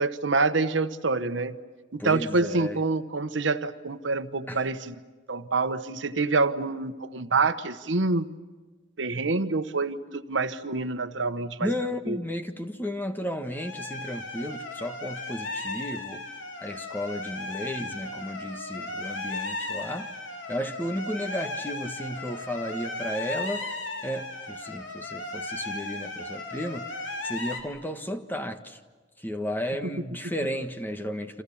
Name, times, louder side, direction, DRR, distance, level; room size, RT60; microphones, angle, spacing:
voice 1, 0.0-1.6 1.9-5.0 5.3-8.4 9.0-12.2 29.9-30.0, right 3 dB, 75° right, 1.1 m, -27 dB
voice 2, 2.0-2.8 4.5-4.6 11.6-16.2 16.6-20.1 20.5-23.7 24.0-26.9 27.2-28.8 29.2-31.4, equal, 10° left, 1.5 m, -33 dB
sound 1, 13.5-27.6, left 2 dB, 80° left, 3.6 m, -36 dB
29.5 x 27.0 x 7.2 m
head